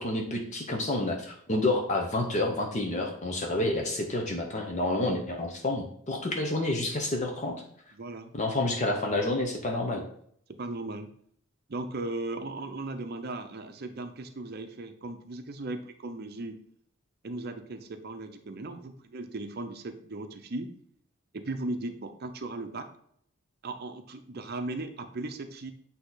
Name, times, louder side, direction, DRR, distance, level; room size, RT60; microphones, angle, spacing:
voice 1, 0.0-7.6 8.3-10.0, left 2 dB, 35° left, 2 dB, 0.7 m, -29 dB
voice 2, 7.9-8.3 10.5-11.1 11.7-16.6 17.2-20.7 21.3-22.9 23.6-25.7, right 2 dB, 50° right, 8 dB, 0.6 m, -37 dB
8.4 x 2.8 x 3.9 m, 0.65 s
head